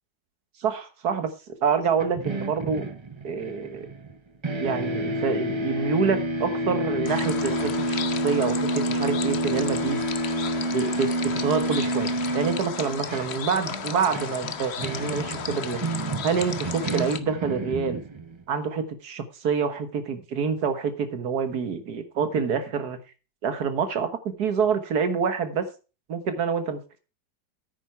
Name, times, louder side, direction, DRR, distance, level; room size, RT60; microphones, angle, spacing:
voice 1, 0.6-2.9 3.2-3.9 4.6-10.0 10.7-15.8 16.2-18.0 18.5-23.0 23.4-25.7 26.1-27.0, right 6 dB, 60° right, 9 dB, 1.8 m, -27 dB
sound 1, 2.0-4.2 4.4-18.4, right 1 dB, 40° right, 0.4 m, -29 dB
sound 2, 7.0-17.2, left 7 dB, 50° left, 0.8 m, -35 dB
9.8 x 9.2 x 4.5 m, 0.33 s
omnidirectional pair, 1.9 m